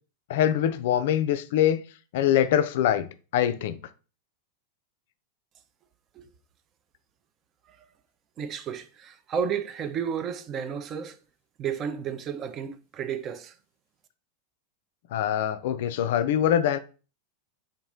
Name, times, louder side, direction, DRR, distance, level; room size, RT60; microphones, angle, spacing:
voice 1, 0.3-1.8 2.1-3.1 3.3-3.8 15.1-16.8, left 10 dB, 55° left, 0.3 m, -23 dB
voice 2, 8.4-11.2 11.6-13.5, right 7 dB, 30° right, 0.4 m, -32 dB
3.6 x 2.9 x 3.7 m
figure-of-eight pair, 90°, 0 cm